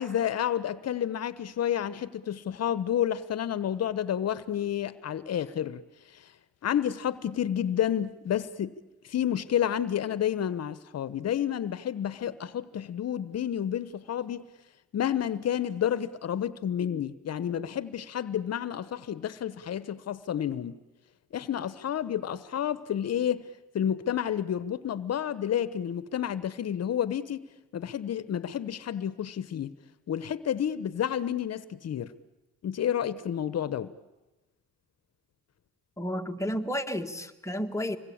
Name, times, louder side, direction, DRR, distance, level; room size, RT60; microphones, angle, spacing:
voice 1, 0.0-5.8 6.1-6.2 6.6-8.7 9.1-14.5 14.9-20.8 21.3-27.5 27.7-29.7 30.1-32.1 32.6-33.9, left 9 dB, 55° left, 15 dB, 1.1 m, -30 dB
voice 2, 36.0-38.0, equal, 10° left, 5 dB, 1.7 m, -31 dB
26.0 x 21.0 x 8.7 m, 1.1 s
cardioid pair, 90°, 30 cm